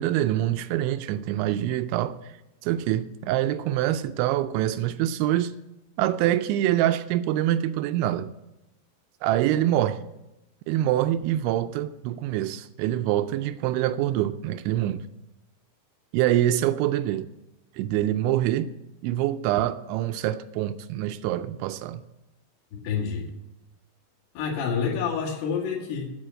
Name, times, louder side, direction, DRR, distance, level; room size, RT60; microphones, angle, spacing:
voice 1, 0.0-2.3 2.6-5.5 6.0-8.3 9.2-10.0 10.7-15.1 16.1-17.3 17.8-18.7 19.0-22.0, right 13 dB, 85° right, 11 dB, 2.7 m, -25 dB
voice 2, 22.7-23.3 24.4-26.1, left 6 dB, 65° left, -4 dB, 3.9 m, -28 dB
9.9 x 8.2 x 7.5 m, 0.94 s
omnidirectional pair, 5.6 m